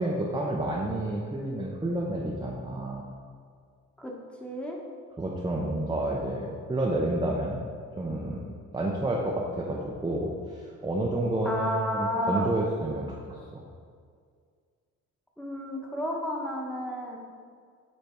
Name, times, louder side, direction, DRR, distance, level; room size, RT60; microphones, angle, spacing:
voice 1, 0.0-3.0 5.2-7.6 8.0-8.4 8.7-13.6, right 1 dB, 15° right, -3 dB, 0.7 m, -30 dB
voice 2, 4.4-4.8 11.4-12.5 15.4-17.2, equal, 5° left, -2 dB, 1.2 m, -31 dB
8.2 x 3.4 x 4.4 m, 2.1 s
cardioid pair, 90°, 30 cm